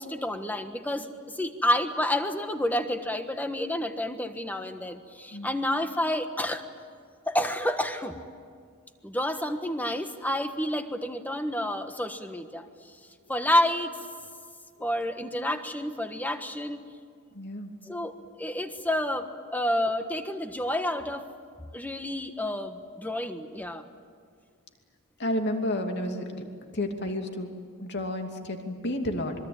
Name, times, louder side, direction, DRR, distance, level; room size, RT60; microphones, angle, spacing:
voice 1, 0.0-6.6 7.3-8.2 9.0-12.7 13.3-13.9 14.8-16.8 17.8-18.1 18.4-21.3 21.7-23.8, left 1 dB, 10° left, 7 dB, 1.4 m, -29 dB
voice 2, 17.3-17.7 25.2-26.4 26.7-27.5 27.8-29.3, left 1 dB, 55° left, 4 dB, 2.7 m, -31 dB
26.0 x 23.0 x 8.9 m, 2.1 s
head